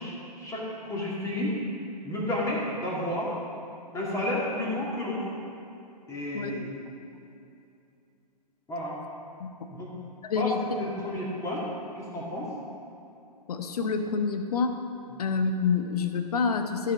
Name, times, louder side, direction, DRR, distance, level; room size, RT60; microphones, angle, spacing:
voice 1, 0.0-1.6 2.0-3.4 3.9-5.3 6.1-6.7 8.7-9.0 9.7-9.9 10.4-10.5 10.8-11.7 11.9-12.5 15.1-15.2, left 1 dB, 15° left, -5 dB, 2.2 m, -31 dB
voice 2, 10.2-10.6 13.5-14.8 15.2-16.9, left 5 dB, 65° left, 6 dB, 1.0 m, -27 dB
14.0 x 5.7 x 5.5 m, 2.7 s
figure-of-eight pair, 120°, 21 cm